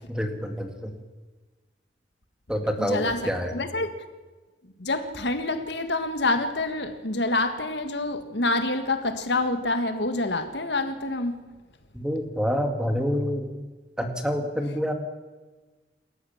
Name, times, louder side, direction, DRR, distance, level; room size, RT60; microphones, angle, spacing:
voice 1, 0.1-0.9 2.5-3.5 11.9-13.5 14.0-14.9, equal, 5° right, 5 dB, 2.3 m, -27 dB
voice 2, 2.8-3.9 4.8-11.4, left 2 dB, 65° left, 8 dB, 1.8 m, -27 dB
28.0 x 14.0 x 7.3 m, 1.3 s
head